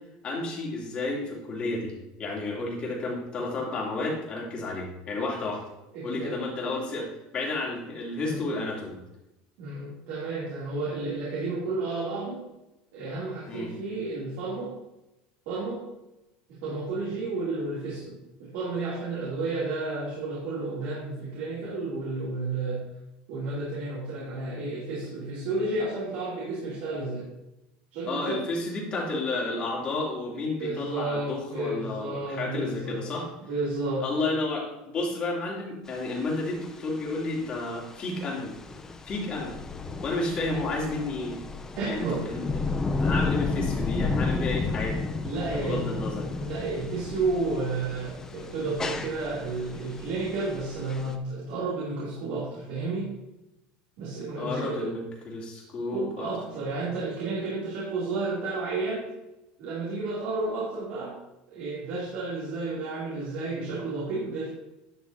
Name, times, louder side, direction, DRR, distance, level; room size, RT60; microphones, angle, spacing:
voice 1, 0.2-1.9 2.2-5.6 6.0-7.1 7.3-9.0 13.5-13.7 28.1-33.3 34.0-38.5 39.0-39.5 40.0-41.4 41.8-42.6 43.0-45.0 45.5-46.3 54.4-55.0 55.3-56.3, left 2 dB, 35° left, -3 dB, 2.7 m, -31 dB
voice 2, 5.9-6.3 8.2-8.5 9.6-12.4 12.9-14.7 15.5-15.8 16.6-22.8 23.3-27.3 27.9-28.5 30.6-33.0 33.5-34.1 41.8-42.2 45.2-45.9 46.3-53.2 54.0-54.9 55.5-59.1 59.6-61.1 61.5-64.5, right 3 dB, 70° right, -6 dB, 2.7 m, -32 dB
sound 1, 35.9-51.2, left 3 dB, 15° left, 0.6 m, -32 dB
11.0 x 6.5 x 2.7 m, 0.94 s
cardioid pair, 140°, 3 cm